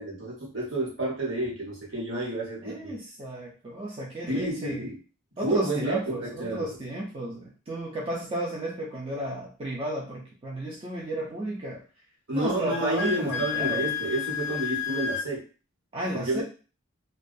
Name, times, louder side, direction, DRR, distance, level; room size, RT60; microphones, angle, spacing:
voice 1, 0.0-2.9 4.3-5.0 5.4-6.8 12.3-15.4 16.1-16.4, right 2 dB, 70° right, -4 dB, 1.2 m, -30 dB
voice 2, 2.6-4.9 5.4-11.8 12.3-13.9 15.9-16.4, right 1 dB, 25° right, -4 dB, 0.4 m, -33 dB
Wind instrument woodwind instrument, 12.7-15.3, left 8 dB, 65° left, 0.3 m, -31 dB
2.3 x 2.2 x 2.6 m, 0.35 s
head